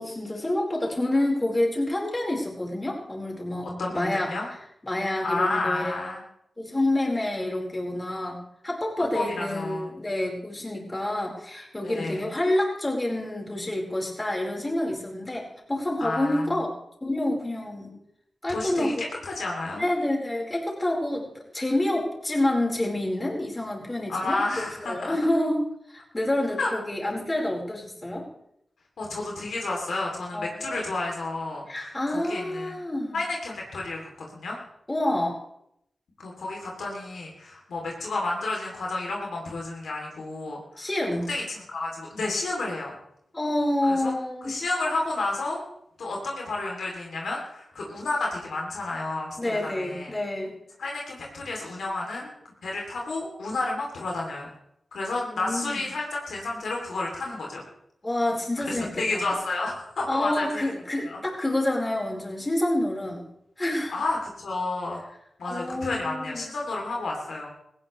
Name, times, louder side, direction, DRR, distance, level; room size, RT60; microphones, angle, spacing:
voice 1, 0.0-4.4 4.8-6.0 6.6-18.0 18.4-18.9 19.7-28.3 30.3-30.8 31.7-33.2 34.9-35.4 40.8-41.3 43.3-44.6 49.4-50.6 55.3-55.8 58.0-59.3 60.1-63.3 63.6-63.9 65.5-66.6, left 1 dB, 25° left, -1 dB, 4.6 m, -28 dB
voice 2, 3.8-4.5 5.2-6.2 9.1-9.9 11.8-12.3 16.0-16.5 18.5-18.9 19.2-19.8 24.1-25.2 26.6-26.7 29.0-32.8 33.1-34.6 36.2-40.9 41.3-42.9 43.9-44.1 44.4-45.6 46.0-50.1 50.8-52.3 52.6-54.5 54.9-57.6 58.7-60.7 61.0-61.2 63.9-65.0 65.4-67.5, left 2 dB, 85° left, -1 dB, 3.0 m, -31 dB
18.0 x 16.0 x 3.3 m, 0.75 s
cardioid pair, 45°, 0 cm